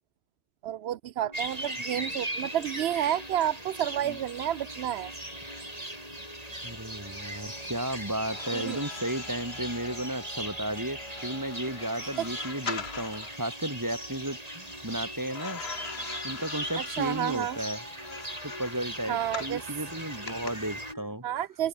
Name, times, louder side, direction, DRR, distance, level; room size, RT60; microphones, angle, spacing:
voice 1, 0.6-5.1 8.5-8.8 12.2-12.3 16.8-17.6 19.1-19.6 21.2-21.7, right 11 dB, 90° right, 0.9 m, -30 dB
sound 1, 1.2-21.1, left 1 dB, 35° left, 7.4 m, -48 dB
sound 2, 1.3-20.9, right 1 dB, 40° right, 5.4 m, -39 dB
voice 2, 6.6-15.6 16.2-17.8 18.4-21.3, right 1 dB, 20° right, 4.0 m, -34 dB
sound 3, 8.2-13.4 15.3-19.6 20.3-20.5, left 6 dB, 85° left, 1.7 m, -42 dB
open air
omnidirectional pair, 1.0 m